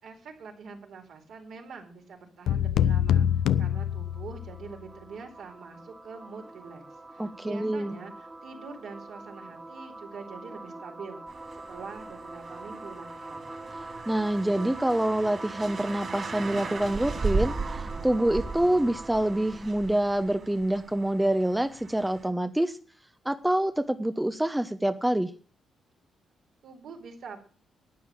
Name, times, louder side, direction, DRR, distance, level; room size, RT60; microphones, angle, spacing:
voice 1, 0.0-6.8 7.1-11.2 11.7-13.5 26.6-27.4, right 5 dB, 75° right, 2 dB, 4.4 m, -44 dB
sound 1, 2.5-4.7, left 10 dB, 85° left, 0.6 m, -25 dB
sound 2, 3.1-19.8, right 2 dB, 25° right, 1.4 m, -43 dB
voice 2, 7.2-8.0 14.1-22.8 23.2-25.3, right 1 dB, 5° right, 9 dB, 1.0 m, -26 dB
sound 3, 11.3-22.3, right 4 dB, 45° right, 3.9 m, -37 dB
12.0 x 9.4 x 7.6 m, 0.42 s
cardioid pair, 80°, 0 cm